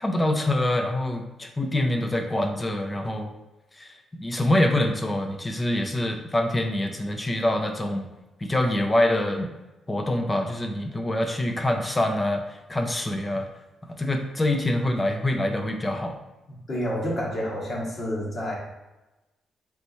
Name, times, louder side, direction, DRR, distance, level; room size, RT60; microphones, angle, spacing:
voice 1, 0.0-3.3 3.8-8.1 8.4-9.5 9.9-12.4 12.7-13.5 14.0-16.2, left 1 dB, 20° left, 4 dB, 0.4 m, -25 dB
voice 2, 16.7-18.6, equal, 50° left, -4 dB, 1.4 m, -29 dB
3.4 x 3.0 x 4.0 m, 1.0 s
cardioid pair, 95°, 0 cm